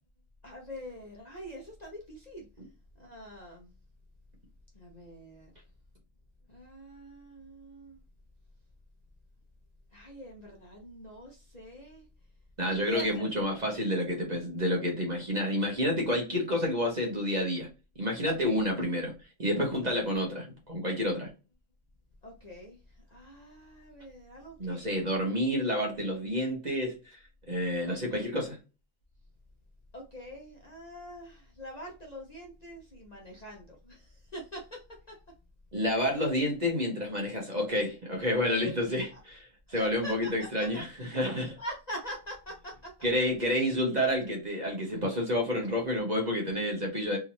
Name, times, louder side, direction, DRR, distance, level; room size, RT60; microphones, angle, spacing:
voice 1, 0.4-2.5 3.0-3.7 4.7-5.5 6.5-8.0 9.9-12.0 12.7-13.2 18.2-18.6 22.2-22.8 23.1-25.0 27.9-28.2 29.9-34.8 35.1-35.2 38.3-38.4 39.1-39.2 39.7-40.8 41.5-42.9, equal, 35° left, -1 dB, 0.9 m, -44 dB
voice 2, 12.6-17.7 18.0-19.1 19.4-21.3 24.6-27.2 27.5-28.6 35.7-41.6 43.0-47.2, left 1 dB, 35° right, -1 dB, 1.2 m, -29 dB
3.7 x 2.7 x 3.0 m, 0.30 s
omnidirectional pair, 1.3 m